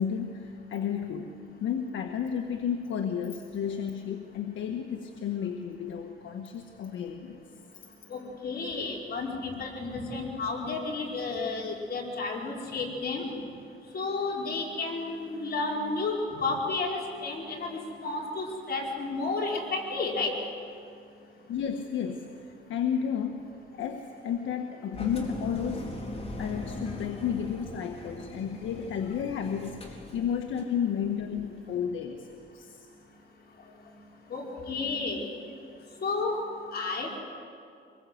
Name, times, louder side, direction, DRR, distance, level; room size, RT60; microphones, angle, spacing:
voice 1, 0.0-1.3 1.6-7.4 21.5-22.3 22.7-23.4 23.7-25.9 26.4-32.3 32.5-32.8, left 8 dB, 75° left, 4 dB, 1.5 m, -32 dB
voice 2, 8.1-13.3 13.9-20.3 34.3-35.3 36.0-36.4 36.7-37.2, left 3 dB, 50° left, -1 dB, 5.3 m, -32 dB
Engine, 24.9-30.8, left 1 dB, 30° left, 4.2 m, -39 dB
25.0 x 21.5 x 8.0 m, 2.4 s
cardioid pair, 90°, 20 cm